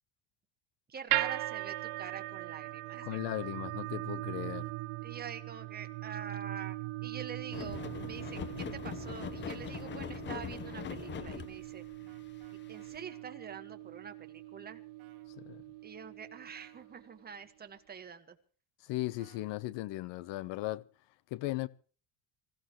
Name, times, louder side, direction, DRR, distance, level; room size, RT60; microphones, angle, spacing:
voice 1, 0.9-3.2 5.0-6.8 7.0-11.8 12.7-14.8 15.8-18.4, right 7 dB, 20° right, 1.7 m, -46 dB
sound 1, 1.1-17.3, right 18 dB, 75° right, 1.2 m, -40 dB
voice 2, 3.0-4.7 15.4-15.6 18.8-20.8 21.3-21.7, left 17 dB, 80° left, 1.1 m, -37 dB
sound 2, 7.5-12.1 12.4-12.5 12.9-13.0, left 9 dB, 25° left, 0.6 m, -41 dB
sound 3, 12.1-13.3 15.0-15.3 16.6-16.9 19.2-19.5, right 12 dB, 55° right, 4.5 m, -63 dB
25.5 x 15.5 x 3.2 m
cardioid pair, 165°, 43 cm